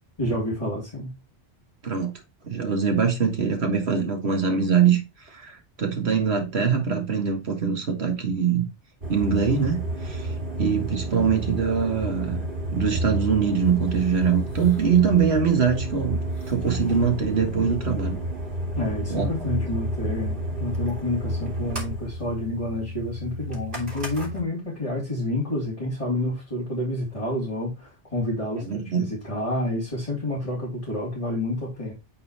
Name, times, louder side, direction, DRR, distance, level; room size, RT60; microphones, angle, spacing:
voice 1, 0.2-1.1 18.8-31.9, left 1 dB, 30° left, 3.3 m, -29 dB
voice 2, 2.4-8.7 9.1-12.5 12.7-16.2 16.5-18.2 19.1-19.3 28.6-29.1, right 6 dB, 75° right, 2.0 m, -23 dB
sound 1, 9.0-24.4, right 1 dB, 55° right, 2.8 m, -31 dB
8.7 x 4.2 x 4.2 m
omnidirectional pair, 1.1 m